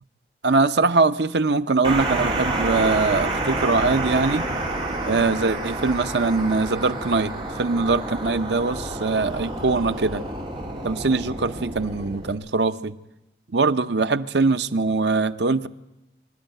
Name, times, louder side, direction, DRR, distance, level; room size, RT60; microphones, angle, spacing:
voice 1, 0.4-4.4 5.1-7.3 7.6-10.2 10.8-12.9 13.5-15.7, right 3 dB, 80° right, 12 dB, 0.8 m, -22 dB
sound 1, 1.8-12.3, right 2 dB, 30° right, 3.4 m, -29 dB
24.5 x 12.0 x 9.1 m, 0.97 s
head